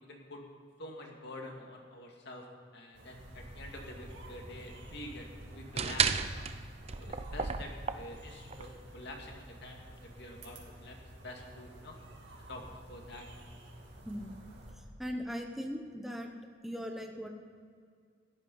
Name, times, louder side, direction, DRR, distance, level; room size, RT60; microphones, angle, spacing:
voice 1, 0.0-0.4 0.8-2.5 2.7-6.5 7.0-11.0 11.2-12.0 12.5-13.3, left 1 dB, 65° left, 1 dB, 2.3 m, -47 dB
sound 1, 2.9-14.7, right 1 dB, 65° right, 2.5 m, -51 dB
sound 2, 3.3-8.6, right 6 dB, 35° right, 0.6 m, -35 dB
voice 2, 15.0-16.3 16.6-17.3, equal, ahead, 2 dB, 1.0 m, -39 dB
14.5 x 11.0 x 5.5 m, 2.1 s
head